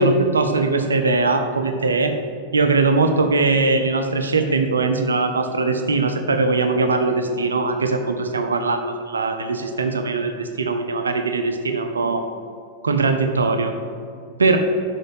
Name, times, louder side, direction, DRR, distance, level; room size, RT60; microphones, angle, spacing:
voice 1, 0.0-2.1 2.5-12.3 12.8-13.7 14.4-14.6, right 3 dB, 80° right, 6 dB, 0.7 m, -20 dB
6.3 x 5.7 x 7.1 m, 2.3 s
figure-of-eight pair, 90°, 0 cm